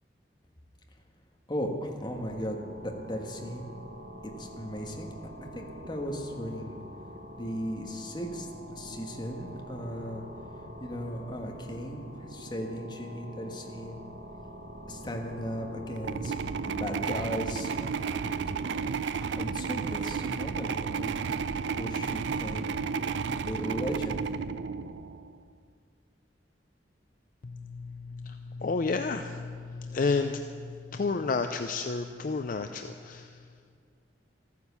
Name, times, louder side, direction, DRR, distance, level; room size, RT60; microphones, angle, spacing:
voice 1, 1.5-3.7 4.2-5.1 5.5-6.8 7.3-8.5 8.7-10.2 10.8-12.0 12.3-14.0 14.9-16.4 16.7-17.7 19.2-21.3 21.7-22.7 23.5-24.2, equal, 25° left, 2 dB, 1.5 m, -36 dB
sound 1, 2.1-18.8, equal, 60° right, 1.3 m, -45 dB
sound 2, 15.9-25.3, right 5 dB, 90° right, 0.5 m, -32 dB
voice 2, 27.4-33.4, left 4 dB, 50° left, 7 dB, 0.5 m, -31 dB
14.0 x 9.5 x 6.9 m, 2.2 s
head